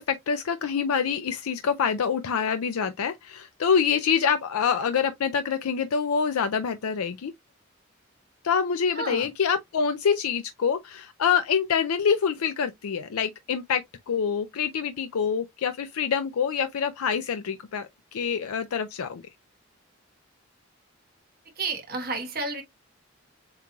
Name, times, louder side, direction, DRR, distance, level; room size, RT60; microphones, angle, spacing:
voice 1, 0.0-7.3 8.4-19.2, left 6 dB, 90° left, 0.5 m, -26 dB
voice 2, 8.9-9.3 21.6-22.6, right 3 dB, 45° right, 1.3 m, -31 dB
7.4 x 3.0 x 2.3 m
head